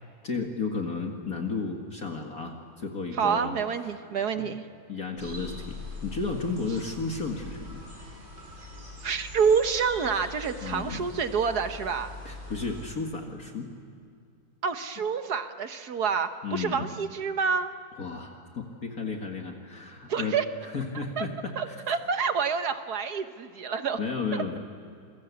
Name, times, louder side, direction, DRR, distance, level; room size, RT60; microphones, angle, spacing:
voice 1, 0.0-3.5 4.4-4.5 4.9-7.8 10.6-11.0 12.3-13.7 16.4-16.9 18.0-20.3 20.6-22.0 24.0-24.6, left 4 dB, 50° left, 2 dB, 2.3 m, -33 dB
voice 2, 3.1-4.6 9.0-12.1 14.6-17.7 20.1-20.4 21.2-21.3 21.6-24.0 24.3-24.6, right 6 dB, 55° right, 9 dB, 1.5 m, -28 dB
sound 1, 5.2-12.9, left 2 dB, 25° right, 7.8 m, -42 dB
28.0 x 22.5 x 8.4 m, 2.4 s
omnidirectional pair, 2.1 m